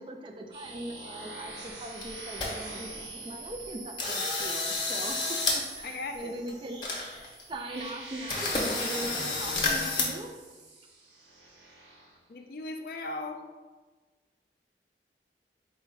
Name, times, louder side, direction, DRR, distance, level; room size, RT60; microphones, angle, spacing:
voice 1, 0.0-10.3, right 1 dB, 30° right, 4 dB, 0.4 m, -40 dB
sound 1, 0.5-12.2, right 2 dB, 85° right, 0.9 m, -44 dB
sound 2, 1.7-1.8 2.0-2.5 2.9-3.0 3.5-3.7 4.0-5.6 5.9-6.0 6.5-6.6 6.8-7.4 7.8-7.9 8.3-10.0, left 3 dB, 25° left, 0.7 m, -30 dB
voice 2, 5.8-6.3 12.3-13.4, left 2 dB, 55° left, 5 dB, 0.4 m, -37 dB
4.4 x 2.2 x 4.6 m, 1.3 s
head